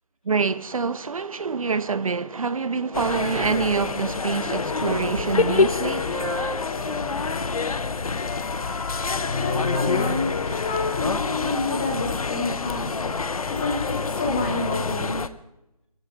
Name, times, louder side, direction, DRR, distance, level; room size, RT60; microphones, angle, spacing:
voice 1, 0.2-6.3, right 5 dB, 60° right, 0.9 m, -26 dB
sound 1, 2.9-15.3, left 4 dB, 65° left, 1.0 m, -27 dB
Wind instrument woodwind instrument, 4.6-7.7 8.1-11.8, left 3 dB, 35° left, 7.4 m, -35 dB
voice 2, 9.2-15.2, left 3 dB, 15° left, 2.0 m, -29 dB
25.0 x 14.5 x 3.5 m
hypercardioid pair, 175°, 19 cm